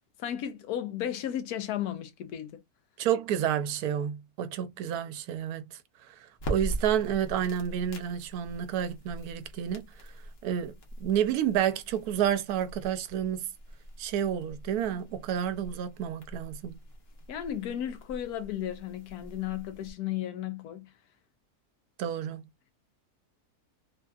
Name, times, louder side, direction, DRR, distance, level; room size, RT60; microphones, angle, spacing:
voice 1, 0.2-2.6 17.3-20.9, left 11 dB, 85° left, 1.2 m, -34 dB
voice 2, 3.0-5.8 6.2-9.9 10.4-13.5 14.0-16.8 22.0-22.5, right 9 dB, 80° right, 1.1 m, -30 dB
sound 1, 6.3-19.9, right 1 dB, 45° left, 1.0 m, -42 dB
3.4 x 2.6 x 2.3 m
omnidirectional pair, 1.6 m